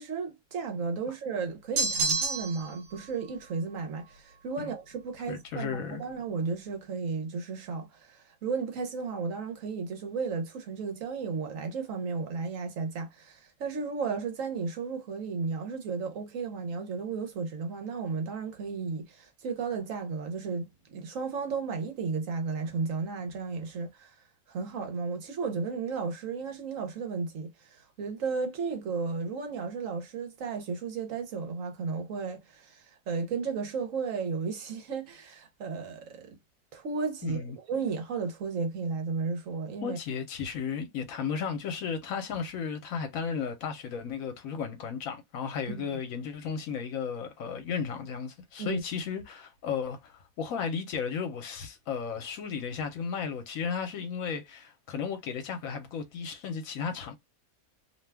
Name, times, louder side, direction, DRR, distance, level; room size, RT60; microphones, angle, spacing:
voice 1, 0.0-24.1 24.5-36.4 36.7-40.0 45.7-45.9 48.6-48.8, right 5 dB, 70° right, 1.2 m, -34 dB
sound 1, 1.8-2.8, right 4 dB, 90° right, 1.2 m, -28 dB
voice 2, 5.3-6.0 37.2-37.6 39.8-57.1, left 6 dB, 75° left, 1.2 m, -34 dB
2.8 x 2.3 x 3.3 m
omnidirectional pair, 1.5 m